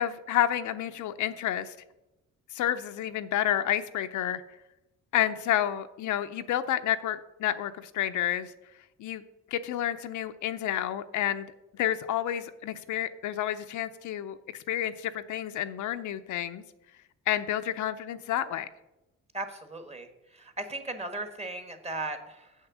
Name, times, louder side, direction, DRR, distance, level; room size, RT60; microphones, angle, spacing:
voice 1, 0.0-1.8 2.5-4.4 5.1-8.5 9.0-9.2 9.5-11.5 11.7-16.6 17.3-18.7, left 11 dB, 75° left, 10 dB, 0.6 m, -30 dB
voice 2, 19.3-22.5, right 2 dB, 20° right, 7 dB, 1.3 m, -37 dB
7.0 x 6.5 x 6.1 m, 0.95 s
cardioid pair, 90°, 30 cm